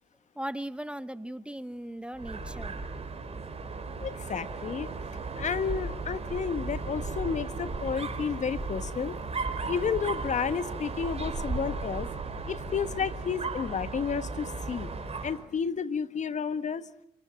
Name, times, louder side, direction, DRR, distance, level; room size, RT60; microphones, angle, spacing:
voice 1, 0.4-2.8, right 1 dB, 5° right, 15 dB, 1.0 m, -38 dB
Dog, 2.1-15.4, right 3 dB, 40° right, 4.5 m, -36 dB
voice 2, 4.0-4.9 5.4-9.2 9.7-12.1 12.5-14.9 15.2-16.9, left 6 dB, 50° left, 13 dB, 1.4 m, -31 dB
28.0 x 19.0 x 7.6 m, 0.77 s
hypercardioid pair, 50°, 16 cm